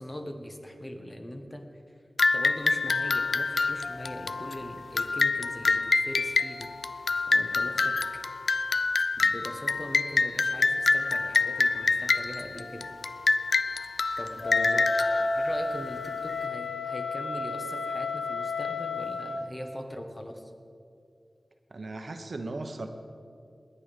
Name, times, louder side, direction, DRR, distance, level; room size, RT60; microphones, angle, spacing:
voice 1, 0.0-2.0 2.3-8.0 9.2-12.9 14.2-14.9 15.3-20.5, left 1 dB, 25° left, 4 dB, 1.4 m, -41 dB
sound 1, 2.2-16.3, left 3 dB, 65° left, 0.4 m, -27 dB
Wind instrument woodwind instrument, 14.4-19.4, left 3 dB, 90° left, 0.9 m, -31 dB
voice 2, 21.7-22.9, right 2 dB, 60° right, 6 dB, 1.0 m, -37 dB
20.5 x 8.8 x 5.2 m, 2.4 s
wide cardioid pair, 80°, 0 cm